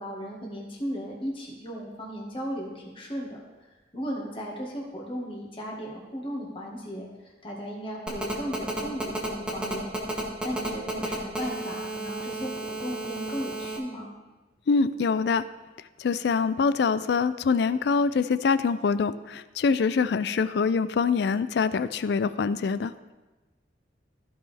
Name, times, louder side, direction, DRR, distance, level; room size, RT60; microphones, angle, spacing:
voice 1, 0.0-3.4 3.9-9.9 10.4-14.1, equal, 30° left, -2 dB, 1.7 m, -36 dB
Telephone, 8.1-13.8, right 1 dB, 5° right, 1.2 m, -32 dB
voice 2, 14.7-15.4 16.0-23.1, left 5 dB, 60° left, 14 dB, 0.3 m, -24 dB
14.5 x 5.4 x 3.4 m, 1.2 s
head